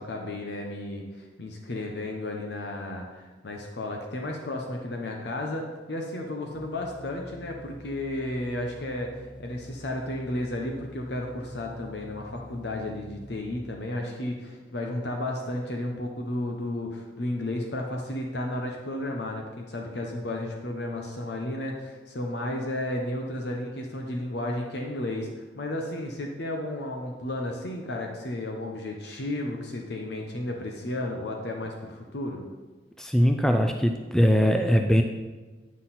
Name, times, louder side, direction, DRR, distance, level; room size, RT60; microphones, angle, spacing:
voice 1, 0.0-32.4, left 1 dB, 65° left, 1 dB, 0.8 m, -33 dB
sound 1, 6.5-13.4, equal, 25° left, 1.3 m, -46 dB
voice 2, 33.0-35.0, equal, 5° left, 4 dB, 0.3 m, -21 dB
9.5 x 5.9 x 4.2 m, 1.3 s
head